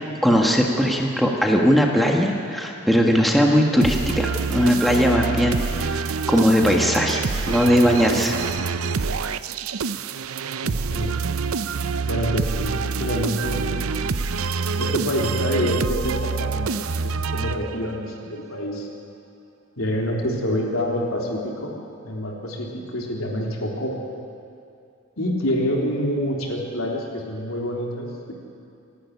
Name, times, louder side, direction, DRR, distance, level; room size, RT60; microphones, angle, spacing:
voice 1, 0.2-8.4, equal, ahead, -1 dB, 1.5 m, -19 dB
sound 1, 3.8-18.1, right 5 dB, 80° right, 0.6 m, -26 dB
voice 2, 10.6-11.2 12.0-13.9 14.8-18.9 19.8-21.7 22.0-23.9 25.2-28.3, equal, 75° left, -1 dB, 3.7 m, -27 dB
28.0 x 11.5 x 9.7 m, 2.6 s
head